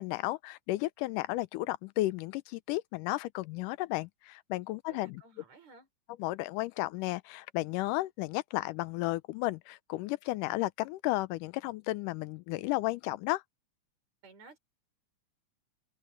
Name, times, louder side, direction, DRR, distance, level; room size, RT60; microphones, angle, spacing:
voice 1, 0.0-5.2 6.2-13.4, left 18 dB, 90° left, 2.2 m, -33 dB
voice 2, 4.9-5.9 14.2-14.6, right 4 dB, 60° right, 4.9 m, -54 dB
omnidirectional pair, 3.6 m